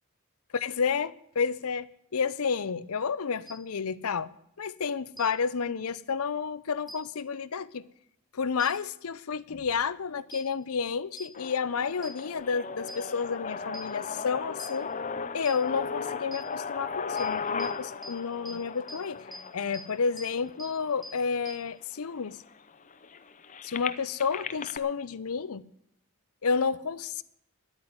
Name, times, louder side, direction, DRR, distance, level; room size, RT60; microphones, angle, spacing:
voice 1, 0.5-1.8 2.1-4.3 4.6-7.8 8.3-14.9 15.3-19.2 19.5-22.4 23.6-25.6 26.4-27.2, left 5 dB, 75° left, 0.6 m, -30 dB
sound 1, 3.5-3.6 5.2-5.3 6.9-7.0 8.6-8.7 10.3-10.4 11.2-11.3 12.0-12.1 12.9-13.0 13.7-13.8 14.6-14.7 15.5-15.6 16.3-16.4 17.2-17.3 17.6-17.7 18.0-18.1 18.5-18.6 18.9-19.0 19.3-19.4 19.7-19.8 20.2-20.3 20.6-20.7 21.0-21.1 21.5-21.6, equal, ahead, 1.6 m, -41 dB
sound 2, 11.3-21.3 22.0-22.1 22.3-24.8, left 5 dB, 35° left, 0.7 m, -37 dB
11.0 x 8.9 x 9.5 m
head